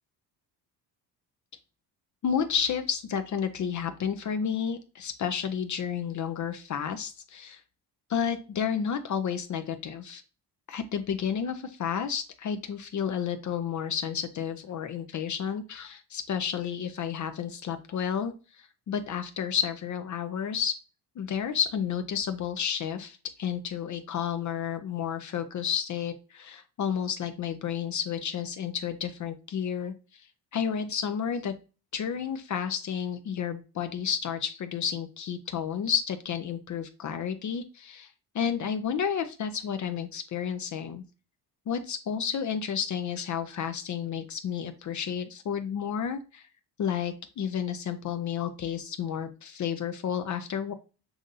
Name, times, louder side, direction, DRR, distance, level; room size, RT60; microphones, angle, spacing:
voice 1, 2.2-7.6 8.1-10.2 10.7-20.7 21.2-30.3 30.5-31.5 31.9-38.1 38.3-41.0 41.7-46.5 46.8-50.7, left 8 dB, 45° left, 8 dB, 0.6 m, -31 dB
7.2 x 2.6 x 2.6 m, 0.33 s
cardioid pair, 90°, 40 cm